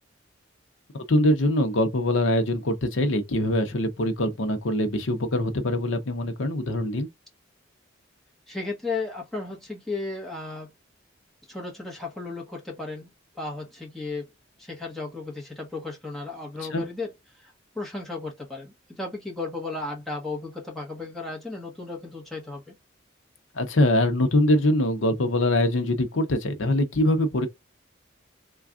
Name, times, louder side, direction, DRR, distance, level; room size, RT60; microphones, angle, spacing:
voice 1, 1.1-7.1 16.7-16.8 23.6-27.5, left 1 dB, 70° left, 0.7 m, -23 dB
voice 2, 8.5-10.7 11.5-13.1 13.3-14.3 14.6-17.1 17.4-22.7 26.6-26.8, left 3 dB, ahead, 1.1 m, -34 dB
3.3 x 2.4 x 2.4 m
head